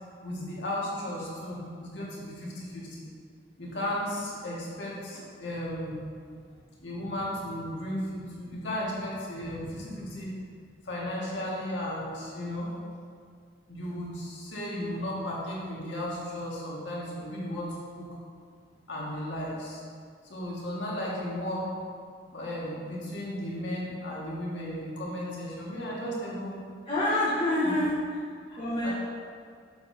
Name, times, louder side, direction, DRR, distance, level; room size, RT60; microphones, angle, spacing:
voice 1, 0.2-3.0 3.6-6.0 6.8-10.5 10.9-12.7 13.7-17.7 17.9-18.1 18.9-19.8 20.3-21.7 22.3-26.6 28.5-28.9, left 1 dB, 75° left, -5 dB, 1.8 m, -35 dB
voice 2, 26.8-27.9 28.6-28.9, left 1 dB, 30° left, -10 dB, 1.2 m, -26 dB
7.1 x 7.1 x 2.7 m, 2.1 s
head